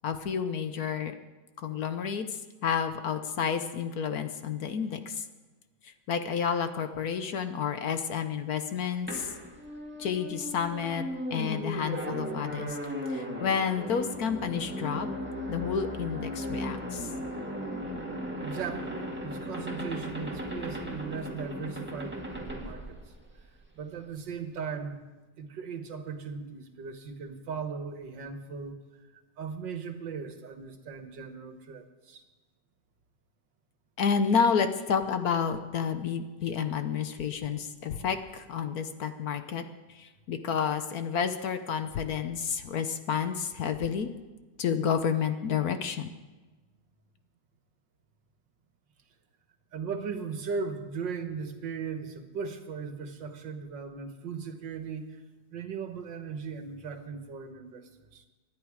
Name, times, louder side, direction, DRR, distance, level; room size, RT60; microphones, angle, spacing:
voice 1, 0.0-1.1 1.6-5.2 5.8-9.3 10.0-11.0 11.3-12.8 13.1-15.1 15.5-17.1 34.0-39.6 39.9-44.1 44.6-46.1, left 7 dB, 60° left, 9 dB, 1.3 m, -30 dB
sound 1, 9.1-23.6, equal, 5° right, 1.7 m, -37 dB
voice 2, 18.4-23.0 23.8-25.0 25.4-28.8 29.1-32.2 49.7-55.2 55.5-58.3, right 5 dB, 80° right, 7 dB, 2.0 m, -38 dB
24.5 x 10.5 x 4.9 m, 1.2 s
omnidirectional pair, 2.0 m